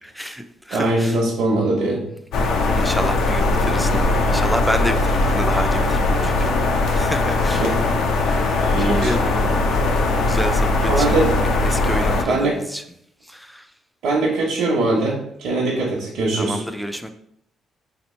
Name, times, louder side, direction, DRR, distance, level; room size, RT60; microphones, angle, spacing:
voice 1, 0.0-1.2 2.6-7.7 8.1-9.5 10.3-11.2 11.6-12.8 13.2-13.7 16.4-17.1, equal, ahead, 0.3 m, -29 dB
voice 2, 0.7-2.0 7.6-7.9 8.7-9.1 10.9-11.3 12.2-12.6 14.0-16.6, right 2 dB, 75° right, 0.8 m, -21 dB
sound 1, 2.3-12.2, left 2 dB, 80° left, 0.6 m, -20 dB
2.9 x 2.9 x 4.2 m
cardioid pair, 140°, 0 cm